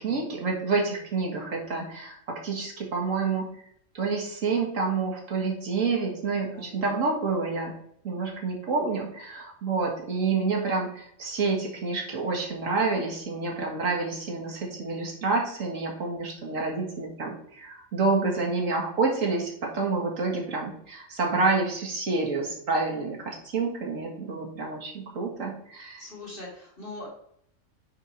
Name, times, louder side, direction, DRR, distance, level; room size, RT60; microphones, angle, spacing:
voice 1, 0.0-3.5 3.9-7.7 8.0-26.1, right 4 dB, 75° right, 0 dB, 2.1 m, -28 dB
voice 2, 26.0-27.1, left 2 dB, 45° left, -4 dB, 2.9 m, -41 dB
9.0 x 4.0 x 4.4 m, 0.67 s
omnidirectional pair, 1.3 m